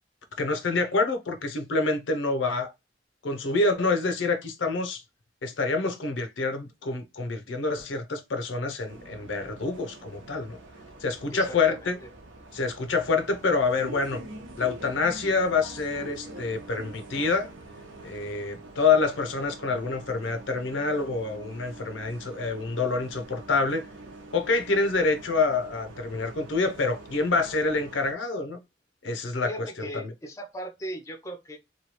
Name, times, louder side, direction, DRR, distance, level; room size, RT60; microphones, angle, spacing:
voice 1, 0.4-2.7 3.2-5.0 5.4-10.6 11.0-12.0 12.5-14.2 14.6-17.5 18.0-23.9 24.3-28.6 29.0-30.1, left 3 dB, 85° left, 0.6 m, -27 dB
Bus, 8.9-28.1, right 2 dB, 90° right, 0.8 m, -45 dB
voice 2, 11.3-11.9 29.4-31.6, right 1 dB, 15° left, 0.4 m, -38 dB
3.1 x 2.3 x 2.8 m
head